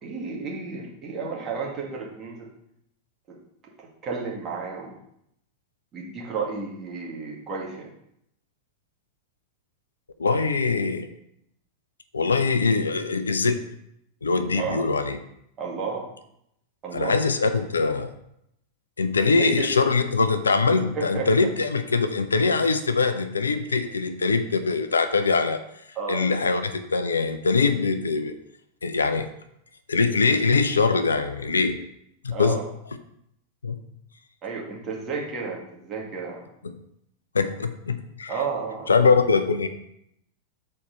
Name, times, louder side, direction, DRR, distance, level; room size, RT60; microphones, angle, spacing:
voice 1, 0.0-2.5 3.3-3.4 3.6-4.9 5.9-7.9 14.5-14.9 15.6-16.0 16.8-17.2 19.2-19.7 20.9-21.3 26.0-26.3 32.3-32.6 34.4-36.4 38.3-38.9, right 5 dB, 30° right, -2 dB, 1.8 m, -32 dB
voice 2, 10.2-11.1 12.1-13.6 14.2-15.2 16.9-18.1 19.0-25.6 26.1-28.3 28.8-29.3 29.9-31.8 32.2-32.6 33.6-33.8 36.6-36.7 37.3-38.3 38.9-39.7, left 4 dB, 75° left, 10 dB, 0.5 m, -22 dB
6.4 x 4.4 x 5.2 m, 0.76 s
figure-of-eight pair, 90°, 0 cm